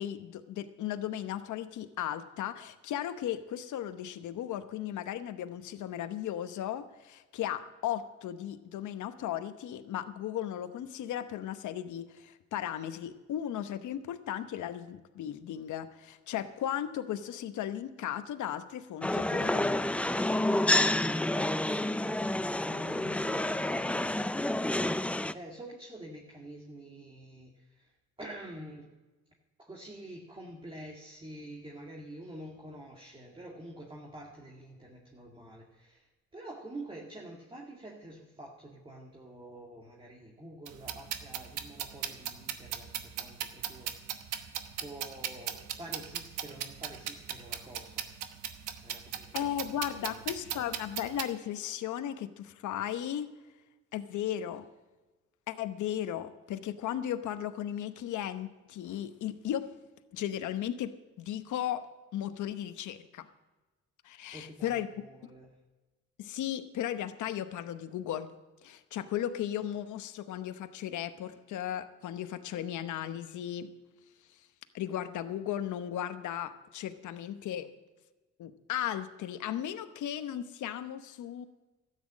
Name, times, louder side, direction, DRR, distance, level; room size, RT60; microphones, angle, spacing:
voice 1, 0.0-19.7 49.3-53.3 53.9-54.7 55.5-59.7 60.1-63.3 64.0-64.9 66.2-68.3 68.6-73.7 74.7-77.7 78.4-81.5, left 11 dB, 75° left, 10 dB, 1.0 m, -36 dB
sound 1, 19.0-25.3, left 1 dB, 5° left, 0.4 m, -29 dB
voice 2, 22.0-24.8 25.3-27.9 28.2-28.9 29.6-43.9 44.8-48.1 48.8-50.6 64.3-65.5, right 1 dB, 15° right, -1 dB, 2.1 m, -47 dB
sound 2, 40.7-51.2, right 10 dB, 85° right, 1.1 m, -38 dB
13.0 x 9.4 x 7.4 m, 1.2 s
cardioid pair, 90°, 30 cm